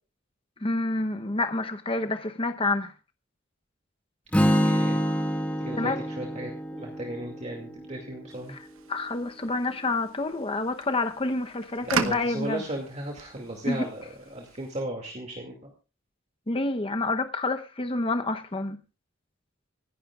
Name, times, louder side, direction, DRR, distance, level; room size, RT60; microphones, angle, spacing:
voice 1, 0.6-2.9 5.8-6.0 8.5-12.6 13.6-13.8 16.5-18.8, left 2 dB, 25° left, 0.9 m, -28 dB
Strum, 4.3-8.5, equal, 5° left, 1.8 m, -27 dB
voice 2, 4.6-5.0 5.6-8.5 11.8-14.0 14.3-15.7, right 1 dB, 35° right, 2.4 m, -36 dB
sound 1, 8.3-14.8, right 5 dB, 80° right, 1.0 m, -38 dB
26.5 x 11.5 x 2.4 m
head